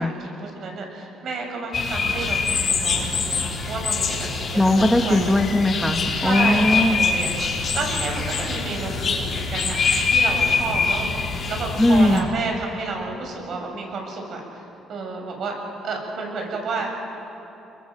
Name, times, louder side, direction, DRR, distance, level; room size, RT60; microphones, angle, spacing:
voice 1, 0.0-5.2 6.2-15.6 15.8-16.9, right 3 dB, 60° right, 1 dB, 7.8 m, -31 dB
sound 1, 1.7-12.2, left 4 dB, 45° left, 4.7 m, -24 dB
voice 2, 4.5-7.0 11.8-12.3, left 1 dB, 10° left, 4 dB, 2.0 m, -19 dB
27.0 x 22.0 x 7.8 m, 3.0 s
cardioid pair, 85°, 0 cm